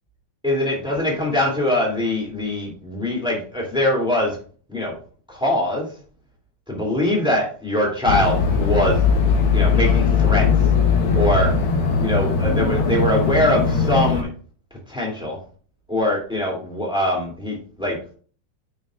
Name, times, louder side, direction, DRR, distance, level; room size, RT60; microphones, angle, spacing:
voice 1, 0.4-4.4 4.7-4.9 5.3-5.9 6.7-9.0 9.5-10.5 11.1-11.5 12.0-14.3 14.9-15.4 15.9-18.0, left 1 dB, ahead, -2 dB, 2.2 m, -22 dB
sound 1, 8.1-14.2, left 5 dB, 70° left, 1.2 m, -19 dB
9.4 x 7.4 x 2.5 m, 0.41 s
omnidirectional pair, 4.2 m